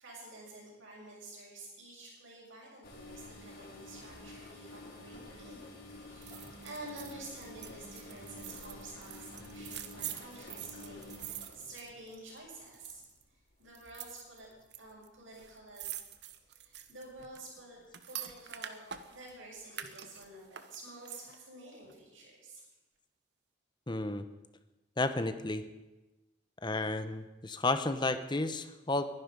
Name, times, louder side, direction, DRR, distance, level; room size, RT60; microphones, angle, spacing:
voice 1, 0.0-5.7 6.0-11.0 11.5-13.0 13.3-14.5 14.8-16.0 16.6-17.8 18.0-18.8 19.1-22.6, right 2 dB, 90° right, -9 dB, 5.9 m, -50 dB
sound 1, 2.8-13.0 13.7-13.9 14.4-14.6 15.4-15.9 16.2-16.3 17.2-17.3, left 1 dB, 55° left, 4.5 m, -50 dB
sound 2, 6.2-12.4 12.7-13.2 13.7-14.8 15.0-15.1 15.3-19.3 19.7-21.5 21.9-22.0, right 10 dB, 60° right, 1.1 m, -45 dB
voice 2, 23.9-24.2 25.0-25.6 26.6-29.1, left 2 dB, 25° left, 10 dB, 0.8 m, -32 dB
22.5 x 11.0 x 5.3 m, 1.1 s
head